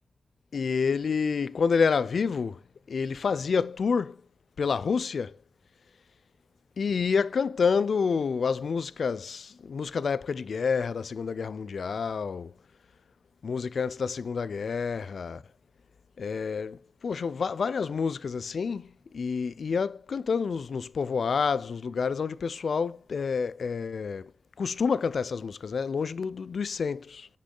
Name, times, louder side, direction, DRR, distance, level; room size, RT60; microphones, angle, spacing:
voice 1, 0.5-2.6 2.9-4.2 4.6-5.4 6.8-12.5 13.4-15.4 16.2-24.3 24.6-27.3, left 5 dB, 75° left, 0.3 m, -28 dB
7.3 x 3.8 x 3.7 m
cardioid pair, 60°, 0 cm